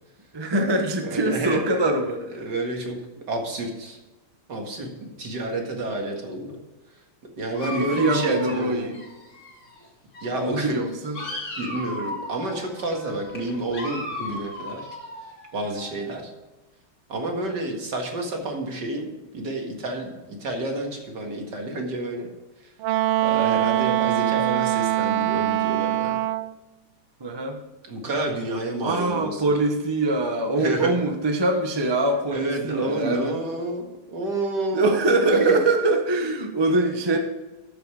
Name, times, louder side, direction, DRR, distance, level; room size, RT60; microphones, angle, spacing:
voice 1, 0.3-2.5 7.6-9.0 10.3-11.2 27.2-27.6 28.8-33.4 34.7-37.2, right 2 dB, 20° right, 4 dB, 0.6 m, -23 dB
voice 2, 1.0-1.8 2.3-3.0 3.3-4.0 4.5-6.6 7.4-8.9 10.2-10.8 11.6-14.9 15.5-16.3 17.1-22.3 23.2-26.2 27.9-29.6 30.6-30.9 32.3-35.6, right 2 dB, 50° right, 2 dB, 2.4 m, -29 dB
Dog, 7.5-9.8 10.1-16.1, left 1 dB, 35° left, 2.6 m, -37 dB
Wind instrument woodwind instrument, 22.8-26.5, right 15 dB, 80° right, 1.5 m, -23 dB
13.5 x 6.8 x 4.9 m, 1.1 s
omnidirectional pair, 2.4 m